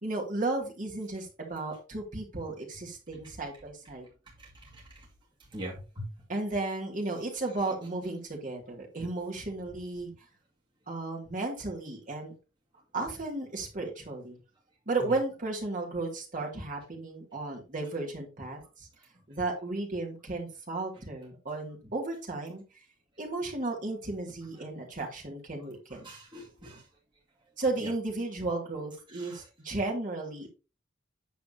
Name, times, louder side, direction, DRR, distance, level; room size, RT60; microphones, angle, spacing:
voice 1, 0.0-4.1 6.3-10.1 10.9-12.3 12.9-14.4 14.9-18.9 19.3-22.6 23.2-26.1 27.6-30.5, right 2 dB, 45° right, -1 dB, 2.5 m, -34 dB
voice 2, 4.4-4.8 5.5-6.1 26.0-26.8 27.8-27.9 29.1-29.4, equal, 25° right, -4 dB, 2.2 m, -42 dB
9.1 x 6.9 x 2.9 m, 0.32 s
head